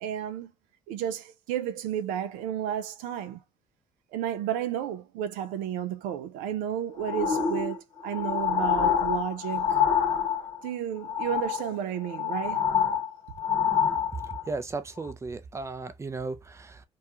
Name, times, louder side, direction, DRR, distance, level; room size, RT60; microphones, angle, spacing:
voice 1, 0.0-0.5 0.9-3.4 4.1-9.8 10.6-12.6, right 10 dB, 70° right, 0.4 m, -32 dB
sound 1, 7.0-10.7 11.0-11.7 12.0-14.5 15.1-15.2, left 8 dB, 35° left, 0.9 m, -27 dB
voice 2, 14.5-16.8, right 3 dB, 20° right, 0.5 m, -35 dB
2.3 x 2.2 x 2.9 m
hypercardioid pair, 55°, 14 cm